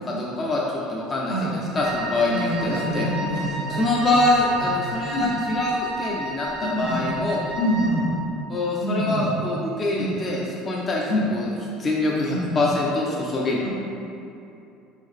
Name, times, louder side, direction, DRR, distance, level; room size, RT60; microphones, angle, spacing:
voice 1, 0.0-3.1 3.7-7.4 8.5-10.4 10.7-11.0 11.3-11.5 11.8-13.7, left 2 dB, 25° left, -3 dB, 0.4 m, -24 dB
Wind instrument woodwind instrument, 1.8-8.1, right 1 dB, 80° right, 0.6 m, -33 dB
voice 2, 2.3-4.2 4.6-4.7 5.1-5.4 6.7-7.1 7.6-8.1 8.8-9.3 9.9-10.2 11.1-11.3 12.3-12.5 13.6-13.7, equal, 75° left, -7 dB, 1.3 m, -26 dB
3.6 x 3.4 x 3.5 m, 2.7 s
cardioid pair, 130°, 0 cm